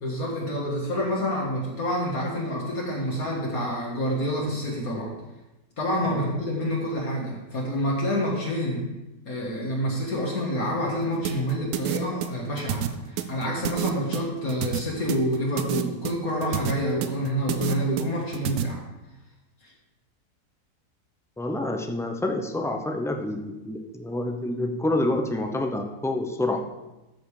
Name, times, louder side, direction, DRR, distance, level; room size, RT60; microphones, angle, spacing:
voice 1, 0.0-5.1 5.8-8.9 9.3-18.8 19.6-19.7, equal, 65° left, -3 dB, 2.2 m, -28 dB
sound 1, 11.3-18.6, right 11 dB, 75° right, 1.1 m, -29 dB
voice 2, 21.4-26.6, left 1 dB, 5° left, 4 dB, 0.4 m, -28 dB
13.5 x 5.4 x 4.9 m, 1.0 s
omnidirectional pair, 1.7 m